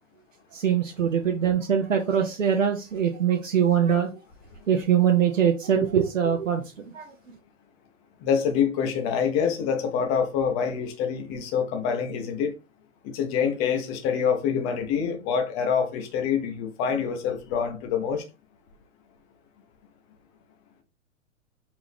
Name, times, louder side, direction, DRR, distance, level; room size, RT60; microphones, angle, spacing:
voice 1, 0.5-4.1 4.7-6.6 6.9-7.1, right 8 dB, 70° right, 0.8 m, -22 dB
voice 2, 8.2-12.5 13.0-18.2, left 7 dB, 20° left, 0.5 m, -26 dB
4.6 x 2.6 x 3.4 m
figure-of-eight pair, 110°, 40 cm